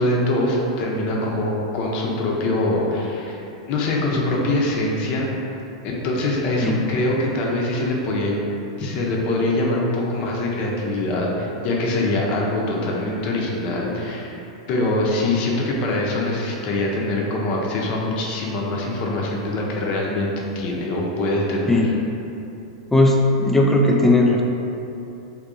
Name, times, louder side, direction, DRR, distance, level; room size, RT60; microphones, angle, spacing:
voice 1, 0.0-3.4 3.7-5.3 5.8-8.4 8.8-14.4 14.7-21.9, left 2 dB, 45° left, -2 dB, 0.6 m, -23 dB
voice 2, 22.9-24.4, left 2 dB, 10° left, 0 dB, 0.4 m, -17 dB
3.6 x 2.6 x 2.6 m, 2.9 s
hypercardioid pair, 100°, 3 cm